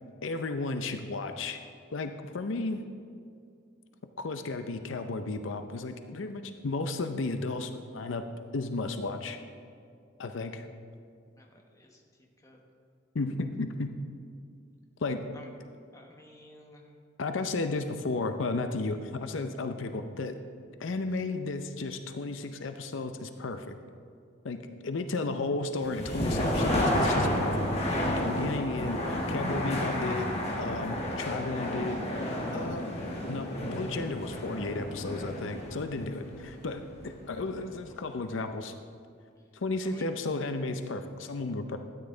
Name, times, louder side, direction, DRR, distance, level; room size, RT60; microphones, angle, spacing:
voice 1, 0.2-1.6 1.9-2.8 4.2-8.2 8.5-9.4 10.2-10.7 13.1-13.9 15.0-15.2 17.2-20.4 20.8-23.7 24.4-27.7 28.1-30.3 30.6-32.0 32.5-32.9 33.3-38.7 39.5-41.8, left 3 dB, 80° left, 8 dB, 0.6 m, -33 dB
voice 2, 11.4-12.0 12.4-12.6 15.3-15.4 15.9-16.8 39.8-40.0, left 1 dB, 15° left, 0 dB, 1.2 m, -54 dB
sound 1, 25.8-37.6, left 1 dB, 30° left, 1.6 m, -31 dB
12.5 x 9.3 x 3.8 m, 2.3 s
head